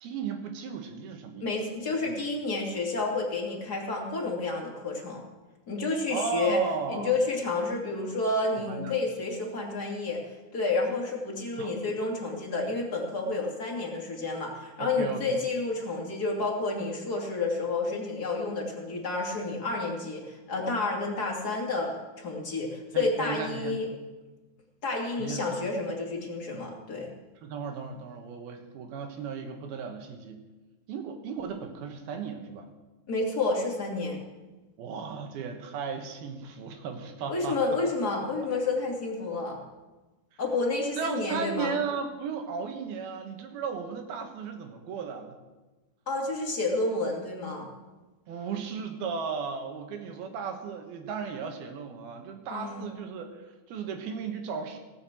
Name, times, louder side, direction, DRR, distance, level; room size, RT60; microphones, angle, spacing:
voice 1, 0.0-1.5 1.8-2.2 6.1-7.1 8.7-8.9 11.6-11.7 14.8-15.4 22.9-23.8 25.2-25.4 27.4-30.4 30.9-32.7 34.8-37.8 40.3-40.4 41.0-45.4 48.3-54.8, right 5 dB, 80° right, 5 dB, 3.3 m, -35 dB
voice 2, 1.4-5.2 5.7-6.6 6.9-10.2 10.5-23.9 24.8-27.1 33.1-34.2 37.3-39.6 40.4-41.7 46.1-47.7 52.5-52.8, left 3 dB, 30° left, -1 dB, 2.5 m, -30 dB
18.0 x 7.5 x 7.5 m, 1.2 s
omnidirectional pair, 4.4 m